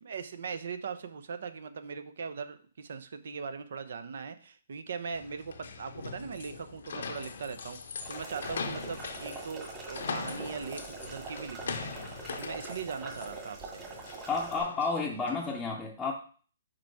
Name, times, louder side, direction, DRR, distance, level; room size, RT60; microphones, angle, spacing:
voice 1, 0.0-7.8 8.1-13.8, right 5 dB, 70° right, 11 dB, 0.7 m, -40 dB
sound 1, 5.1-15.5, left 5 dB, 70° left, 0.7 m, -41 dB
sound 2, 8.0-14.6, right 3 dB, 20° right, 1.6 m, -43 dB
voice 2, 14.3-16.1, left 4 dB, 10° left, -3 dB, 0.7 m, -31 dB
4.9 x 4.4 x 4.6 m, 0.43 s
hypercardioid pair, 145°, 0 cm